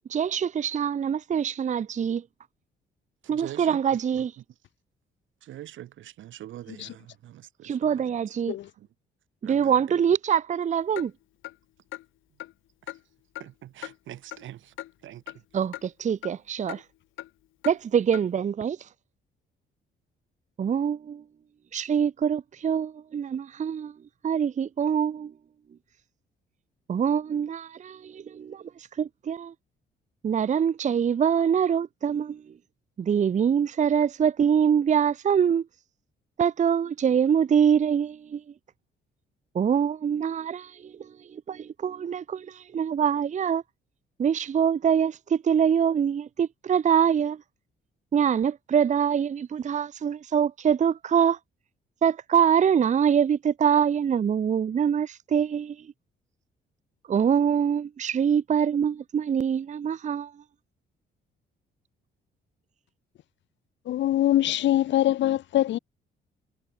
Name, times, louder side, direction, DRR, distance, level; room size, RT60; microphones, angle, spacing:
voice 1, 0.1-2.2 3.3-4.3 7.6-8.6 9.4-11.1 15.5-16.8 17.6-18.9 20.6-21.2 21.7-23.9 24.2-25.3 26.9-29.5 30.2-32.5 33.0-35.7 36.4-38.4 39.5-43.6 44.2-47.4 48.1-51.4 52.0-55.9 57.1-60.4, right 8 dB, 35° right, 0.7 m, -24 dB
voice 2, 3.2-3.8 5.4-7.8 9.4-9.7 13.4-14.7 15.0-15.2, right 13 dB, 75° right, 2.0 m, -43 dB
Clock, 11.0-11.1 11.4-11.5 11.9-12.0 12.4-12.5 12.9-13.0 13.3-13.5 13.8-13.9 14.3-14.4 14.8-14.9 15.3-15.4 15.7-15.8 16.2-16.3 16.7-16.8 17.2-17.3 17.6-17.8 18.1-18.2, left 14 dB, 85° left, 1.8 m, -38 dB
voice 3, 63.9-65.8, left 13 dB, 65° left, 0.6 m, -23 dB
cardioid pair, 90°, 20 cm